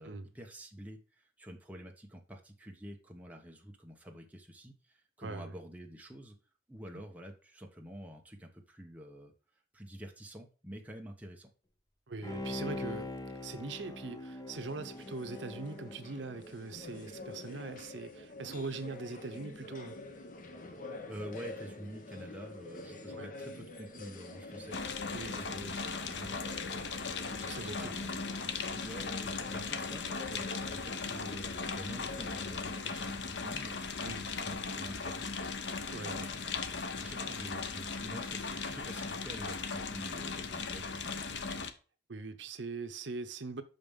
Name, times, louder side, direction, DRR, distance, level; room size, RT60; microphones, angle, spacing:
voice 1, 0.0-6.4 6.7-9.3 9.7-11.5 20.8-26.9 27.4-28.2 28.7-31.5 31.7-36.5 37.0-41.6, equal, 10° right, 1.1 m, -48 dB
voice 2, 5.2-5.5 12.1-13.1 13.4-20.0 23.2-23.3 25.1-25.5 27.5-27.9 34.0-34.3 35.9-36.3 42.1-43.6, right 3 dB, 85° right, 0.8 m, -41 dB
Bowed string instrument, 12.2-16.8 17.2-17.3, left 2 dB, 20° left, 0.7 m, -42 dB
sound 1, 14.7-32.8, left 2 dB, 45° left, 1.0 m, -47 dB
sound 2, 24.7-41.7, left 4 dB, 75° left, 0.8 m, -38 dB
5.9 x 5.3 x 5.4 m
head